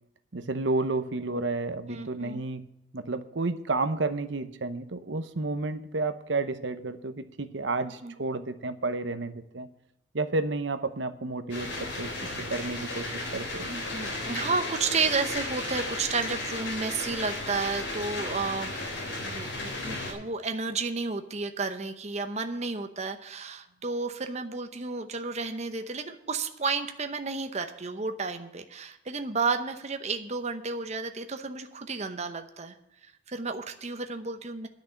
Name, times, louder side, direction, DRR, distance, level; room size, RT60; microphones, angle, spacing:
voice 1, 0.3-2.7 2.9-9.7 10.1-12.1 12.4-13.7, right 3 dB, 70° right, 10 dB, 0.9 m, -31 dB
voice 2, 1.9-2.4 8.0-8.1 13.7-32.7 33.3-34.7, right 4 dB, 35° right, 7 dB, 0.8 m, -32 dB
sound 1, 11.5-20.1, left 2 dB, 70° left, 3.7 m, -34 dB
10.5 x 6.2 x 8.6 m, 0.85 s
head